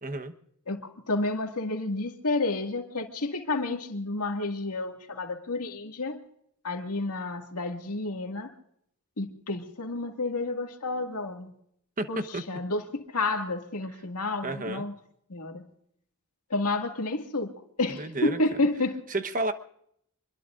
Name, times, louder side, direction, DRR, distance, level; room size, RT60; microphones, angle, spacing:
voice 1, 0.0-0.3 12.0-12.4 14.4-14.8 18.0-18.4 19.1-19.5, right 2 dB, 35° right, 8 dB, 1.1 m, -31 dB
voice 2, 0.7-6.2 6.6-8.5 9.2-11.5 12.1-12.2 12.5-14.9 15.3-15.7 16.5-17.5 17.8-19.0, left 2 dB, 85° left, 4 dB, 2.1 m, -30 dB
26.0 x 22.0 x 2.5 m, 0.71 s
head